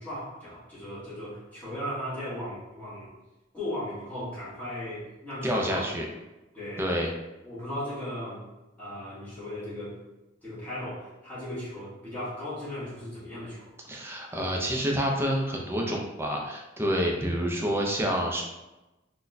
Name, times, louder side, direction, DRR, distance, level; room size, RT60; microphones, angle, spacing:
voice 1, 0.0-3.1 3.5-5.8 6.5-6.9 7.4-8.4 8.8-10.0 10.4-13.7, left 1 dB, 10° left, -11 dB, 1.2 m, -37 dB
voice 2, 5.4-6.1 6.8-7.1 13.9-18.4, equal, 10° right, 0 dB, 0.4 m, -28 dB
4.0 x 2.2 x 2.6 m, 1.0 s
head